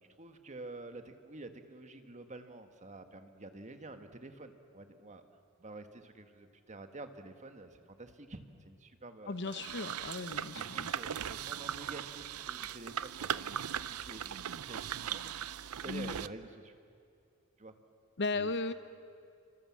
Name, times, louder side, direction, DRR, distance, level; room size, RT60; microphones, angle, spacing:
voice 1, 0.2-5.2 5.6-9.6 10.5-16.8 17.6-17.7 18.3-18.5, right 2 dB, 35° right, 7 dB, 1.5 m, -49 dB
voice 2, 9.3-11.0 15.9-16.1 18.2-18.7, left 3 dB, 55° left, 12 dB, 0.9 m, -36 dB
sound 1, 9.5-16.3, right 9 dB, 85° right, 0.6 m, -39 dB
27.0 x 25.0 x 7.5 m, 2.4 s
head